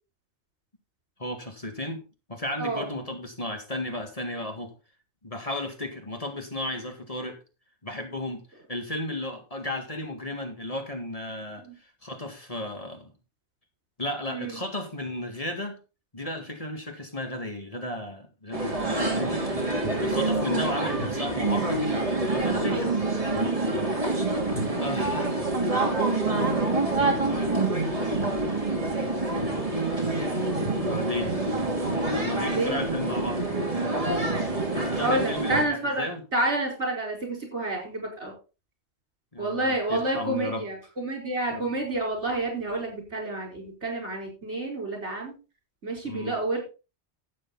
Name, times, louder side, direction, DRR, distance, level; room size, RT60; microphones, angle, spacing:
voice 1, 1.2-2.0 2.3-4.7 5.2-7.4 7.8-13.1 14.0-15.8 16.1-19.5 20.0-21.8 22.3-23.0 24.8-25.4 27.1-27.6 30.8-31.3 32.1-33.4 34.8-36.2 39.3-40.7 41.5-41.7 46.0-46.4, left 1 dB, 30° left, 4 dB, 2.1 m, -34 dB
voice 2, 14.3-14.6 24.8-25.0 32.2-32.8 35.0-36.0 36.3-38.3 39.4-45.3 45.8-46.6, right 2 dB, 75° right, 1 dB, 4.9 m, -29 dB
sound 1, 18.5-35.6, right 2 dB, 30° right, 2.7 m, -26 dB
12.0 x 8.4 x 4.0 m, 0.31 s
omnidirectional pair, 1.2 m